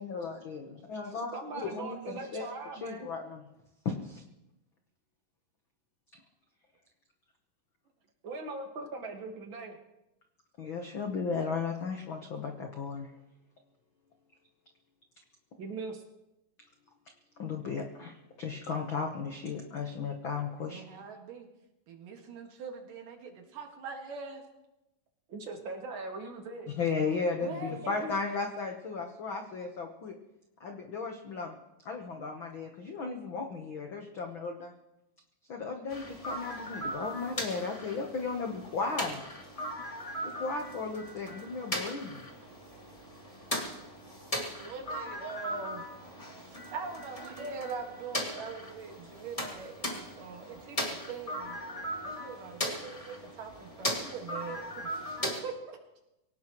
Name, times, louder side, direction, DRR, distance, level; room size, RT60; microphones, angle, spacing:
voice 1, 0.0-2.5 2.8-3.4 3.8-4.2 10.6-13.1 17.4-21.0 26.8-30.2 30.6-31.6 31.8-34.7 35.5-39.3 40.2-42.2, left 4 dB, 90° left, 3 dB, 1.0 m, -35 dB
voice 2, 1.3-3.1 8.2-9.8 15.6-16.0 25.3-26.7 27.7-28.1, right 3 dB, 40° right, 2 dB, 2.0 m, -40 dB
voice 3, 20.7-21.5 21.9-24.4 27.0-27.7 44.6-45.9 46.4-51.6 52.0-54.9 55.2-55.8, right 4 dB, 70° right, 3 dB, 3.3 m, -42 dB
sound 1, 35.9-55.4, equal, 15° left, 1.4 m, -38 dB
23.5 x 17.5 x 3.1 m, 0.92 s
omnidirectional pair, 4.1 m